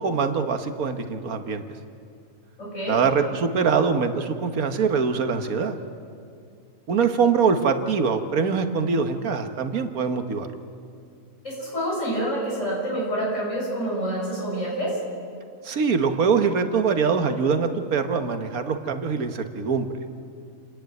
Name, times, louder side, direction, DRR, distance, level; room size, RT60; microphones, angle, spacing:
voice 1, 0.0-1.6 2.9-5.8 6.9-10.5 15.6-19.9, right 5 dB, 85° right, 7 dB, 1.6 m, -23 dB
voice 2, 2.6-3.0 11.4-14.9, right 1 dB, 60° left, -5 dB, 7.5 m, -27 dB
29.5 x 10.5 x 9.1 m, 2.3 s
omnidirectional pair, 1.5 m